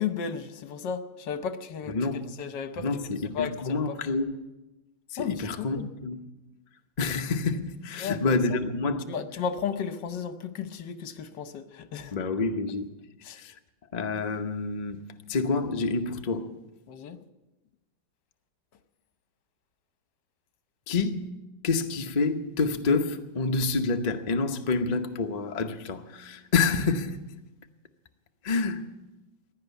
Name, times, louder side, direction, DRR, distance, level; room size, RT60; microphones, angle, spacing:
voice 1, 0.0-2.0 2.4-2.9 3.3-3.9 5.2-5.5 5.7-5.9 8.0-8.4 9.1-12.1 13.2-13.4 16.9-17.2, left 7 dB, 70° left, 1.6 m, -33 dB
voice 2, 1.9-2.3 2.8-4.4 5.1-6.3 7.0-9.2 12.1-12.9 13.3-13.6 13.9-15.0 15.3-16.5 20.9-21.3 21.6-27.2 28.4-28.9, left 4 dB, 40° left, 0.6 m, -28 dB
16.0 x 11.0 x 8.2 m
omnidirectional pair, 2.0 m